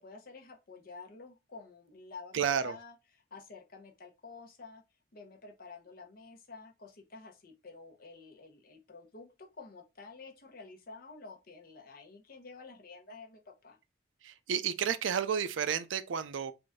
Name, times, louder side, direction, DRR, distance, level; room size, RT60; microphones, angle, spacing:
voice 1, 0.0-4.8 5.1-13.8, left 4 dB, 50° left, 0.9 m, -50 dB
voice 2, 2.3-2.7 14.2-16.5, right 8 dB, 90° right, 0.4 m, -31 dB
3.8 x 2.6 x 3.6 m
head